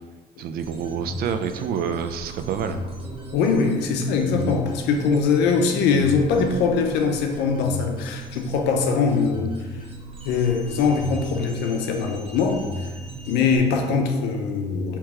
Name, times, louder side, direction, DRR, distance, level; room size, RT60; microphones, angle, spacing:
voice 1, 0.4-2.8, right 7 dB, 65° right, 8 dB, 0.4 m, -28 dB
sound 1, 0.6-13.6, equal, 35° right, 0.9 m, -36 dB
voice 2, 3.3-9.5 10.2-12.6 13.3-15.0, left 5 dB, 85° left, 3 dB, 0.5 m, -22 dB
3.3 x 3.0 x 4.7 m, 1.3 s
cardioid pair, 110°, 17 cm